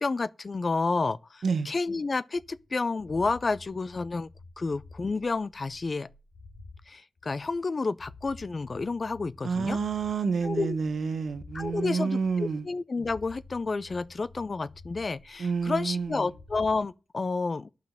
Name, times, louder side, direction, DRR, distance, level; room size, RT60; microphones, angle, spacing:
voice 1, 0.0-4.3 4.6-6.1 6.9-9.8 10.4-10.8 11.5-17.7, left 3 dB, 45° left, 0.4 m, -30 dB
sound 1, 2.3-6.8 7.2-11.8 12.2-12.7 13.0-16.8, left 3 dB, 85° left, 1.6 m, -51 dB
voice 2, 9.4-12.7 15.4-16.3, right 5 dB, 75° right, 1.0 m, -29 dB
7.5 x 5.8 x 7.5 m
cardioid pair, 75°, 0 cm